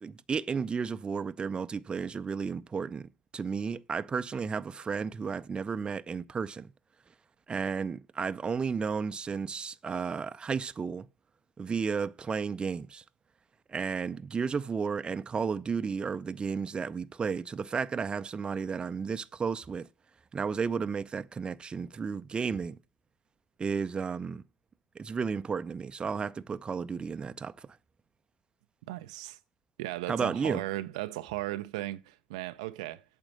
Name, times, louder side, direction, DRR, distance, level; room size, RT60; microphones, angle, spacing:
voice 1, 0.0-6.7 7.5-11.1 11.6-13.0 13.7-19.9 20.3-22.8 23.6-24.4 25.0-27.7 30.1-30.6, right 5 dB, 25° right, 0.6 m, -33 dB
voice 2, 28.9-29.4 29.8-33.0, right 16 dB, 75° right, 0.5 m, -36 dB
8.9 x 6.7 x 7.7 m
hypercardioid pair, 70°, 4 cm